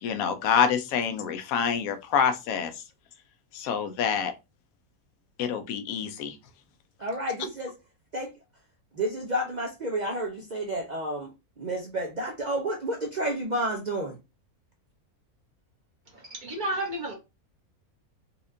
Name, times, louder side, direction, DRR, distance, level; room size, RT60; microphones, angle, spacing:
voice 1, 0.0-2.8 3.5-4.3 5.4-6.4, left 7 dB, 75° left, 1.0 m, -26 dB
voice 2, 7.0-7.7 8.1-8.3 9.0-11.3 11.6-14.2, right 1 dB, 75° right, 0.4 m, -30 dB
voice 3, 16.4-17.1, right 1 dB, 35° right, 1.1 m, -30 dB
4.2 x 2.4 x 2.6 m
omnidirectional pair, 1.6 m